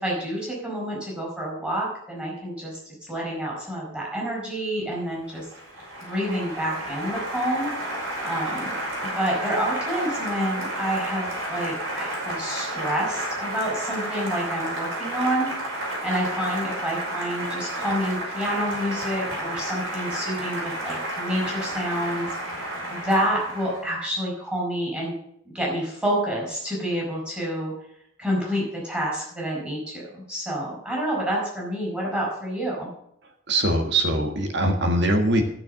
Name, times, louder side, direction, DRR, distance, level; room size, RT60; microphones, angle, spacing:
voice 1, 0.0-2.8 3.1-5.4 6.0-7.7 8.2-15.5 15.8-22.3 22.9-25.1 25.5-27.7 28.2-32.9, equal, 5° right, -3 dB, 4.6 m, -28 dB
Applause, 5.0-23.9, right 1 dB, 75° right, 5.3 m, -31 dB
voice 2, 33.5-35.4, right 1 dB, 55° right, 5 dB, 1.7 m, -22 dB
12.5 x 6.8 x 6.5 m, 0.72 s
head